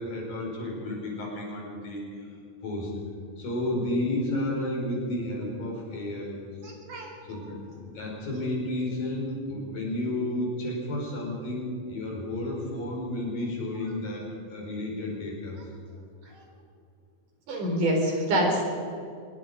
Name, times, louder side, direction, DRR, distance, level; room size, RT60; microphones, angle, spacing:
voice 1, 0.0-2.3 2.6-2.9 3.4-6.4 7.3-15.6, left 1 dB, 70° left, -2 dB, 6.8 m, -32 dB
voice 2, 6.6-7.4 17.5-18.6, right 1 dB, 65° right, 0 dB, 5.4 m, -27 dB
24.0 x 21.0 x 5.2 m, 2.5 s
omnidirectional pair, 4.0 m